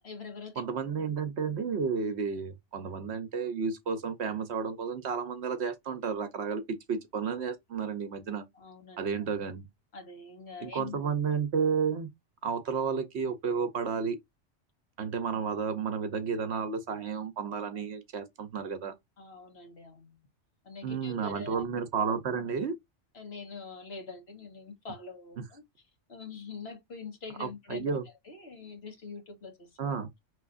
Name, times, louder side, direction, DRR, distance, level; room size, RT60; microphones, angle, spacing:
voice 1, 0.0-0.6 8.5-9.0 9.9-11.0 19.2-20.2 20.6-21.6 23.1-25.6 26.1-28.0 28.2-29.8, left 4 dB, 60° left, 1.6 m, -44 dB
voice 2, 0.6-6.6 6.9-8.4 9.0-9.7 10.6-12.1 12.4-14.2 15.0-18.9 20.8-22.7 25.4-25.5 27.4-28.0 29.8-30.1, right 6 dB, 65° right, 1.0 m, -32 dB
5.4 x 3.2 x 2.4 m
omnidirectional pair, 1.2 m